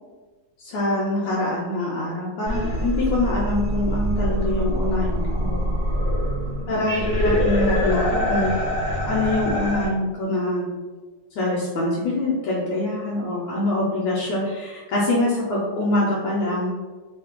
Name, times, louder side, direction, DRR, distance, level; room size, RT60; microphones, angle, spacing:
voice 1, 0.6-5.6 6.7-8.5 9.0-10.6 11.4-16.7, left 2 dB, 85° left, -5 dB, 1.4 m, -24 dB
sound 1, 2.5-9.9, equal, 40° left, 1.0 m, -24 dB
3.2 x 2.4 x 3.5 m, 1.3 s
omnidirectional pair, 1.9 m